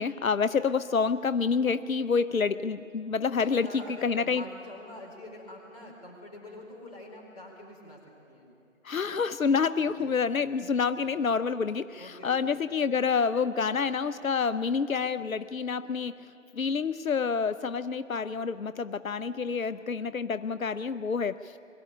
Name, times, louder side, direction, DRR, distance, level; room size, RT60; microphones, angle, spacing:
voice 1, 0.0-4.5 8.8-16.2 16.5-21.6, left 5 dB, 90° left, 13 dB, 0.6 m, -28 dB
voice 2, 3.4-8.0 8.3-8.5 10.0-10.2 10.8-11.1 12.0-12.5, left 1 dB, 30° left, -4 dB, 4.5 m, -45 dB
22.5 x 13.0 x 9.8 m, 2.7 s
figure-of-eight pair, 170°, 40 cm